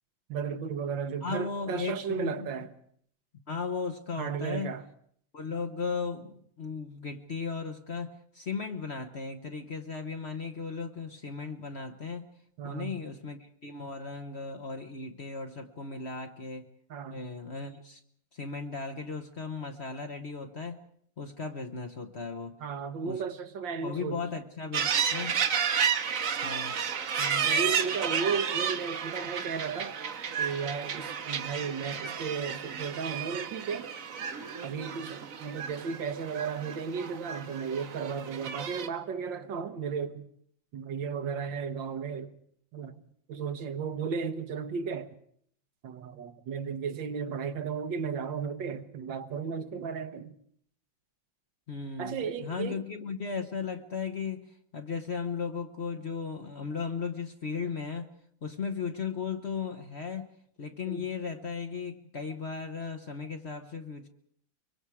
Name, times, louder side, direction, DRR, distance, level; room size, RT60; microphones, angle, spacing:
voice 1, 0.3-2.7 4.2-4.9 12.6-13.0 16.9-17.3 22.6-24.3 27.2-30.0 30.4-33.9 34.6-40.3 40.7-42.4 42.7-45.2 45.8-50.4 52.0-52.8 60.9-61.1, right 6 dB, 75° right, 1.8 m, -34 dB
voice 2, 1.2-2.5 3.5-4.8 5.3-12.3 12.6-16.7 17.1-18.0 18.3-20.8 21.2-22.6 23.0-23.2 23.8-25.4 26.4-26.7 51.7-54.4 54.7-58.1 58.4-60.3 60.6-64.1, left 5 dB, 40° left, 1.2 m, -36 dB
sound 1, 24.7-38.9, right 7 dB, 50° right, 1.3 m, -32 dB
24.0 x 24.0 x 4.8 m
omnidirectional pair, 2.1 m